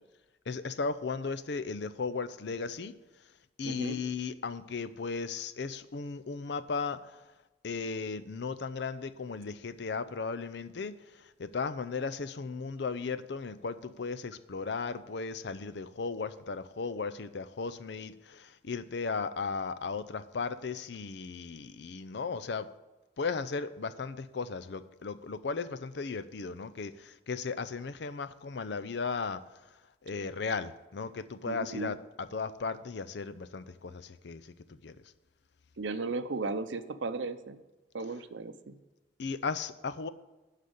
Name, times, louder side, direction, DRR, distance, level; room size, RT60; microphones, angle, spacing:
voice 1, 0.5-2.9 3.6-7.2 7.6-22.7 23.2-29.4 30.0-35.0 39.2-40.1, left 4 dB, 60° left, 12 dB, 0.5 m, -36 dB
voice 2, 3.6-4.0 31.5-32.0 35.8-37.6 37.9-38.8, right 3 dB, 75° right, 11 dB, 0.6 m, -35 dB
11.5 x 4.1 x 8.0 m, 1.1 s
head